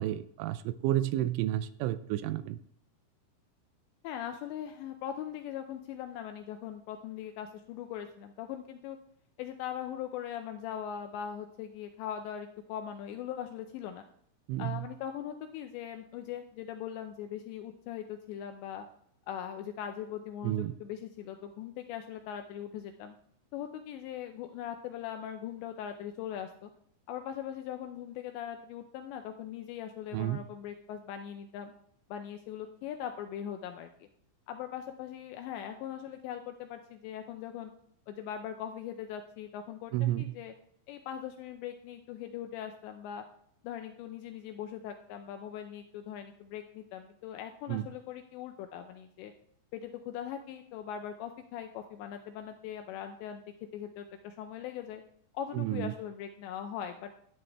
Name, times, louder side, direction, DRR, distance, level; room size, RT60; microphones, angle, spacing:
voice 1, 0.0-2.6 14.5-14.8 20.4-20.7 30.1-30.4 39.9-40.3 47.7-47.9 55.5-55.9, right 13 dB, 85° right, 13 dB, 2.9 m, -31 dB
voice 2, 4.0-9.0 9.4-14.0 14.6-18.9 19.3-23.2 23.5-26.7 27.1-31.7 32.1-34.1 34.5-37.7 38.1-40.5 40.9-43.2 43.6-49.3 49.7-53.4 53.7-55.0 55.3-57.1, left 9 dB, 80° left, 6 dB, 2.6 m, -40 dB
12.5 x 9.8 x 3.4 m, 0.68 s
omnidirectional pair, 5.7 m